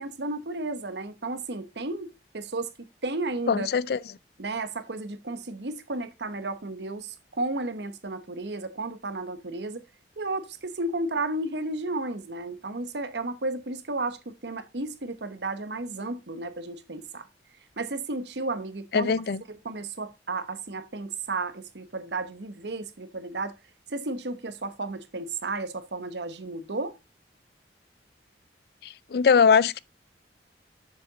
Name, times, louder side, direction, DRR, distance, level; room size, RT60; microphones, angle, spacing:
voice 1, 0.0-3.7 4.4-9.8 10.2-17.3 17.8-19.1 19.5-23.5 23.9-26.9, right 2 dB, 75° right, 1.0 m, -33 dB
voice 2, 3.5-4.0 18.9-19.4 28.8-29.8, left 6 dB, 60° left, 0.4 m, -21 dB
7.1 x 6.7 x 4.0 m
head